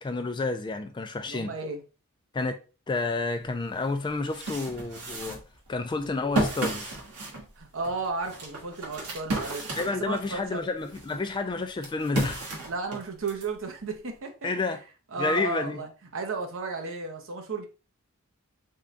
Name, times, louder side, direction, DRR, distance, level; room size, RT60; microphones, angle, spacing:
voice 1, 0.0-1.5 2.3-2.6 2.9-5.4 5.7-7.0 9.7-12.6 14.4-14.8 15.2-15.8, left 3 dB, 20° left, 0.3 m, -30 dB
voice 2, 1.3-1.8 7.6-9.6 10.1-10.6 12.7-14.7 15.1-17.7, right 4 dB, 60° right, 0.7 m, -34 dB
sound 1, 3.5-3.6 4.0-10.4 10.9-13.5, right 2 dB, 85° right, 1.2 m, -33 dB
3.6 x 2.2 x 3.8 m
head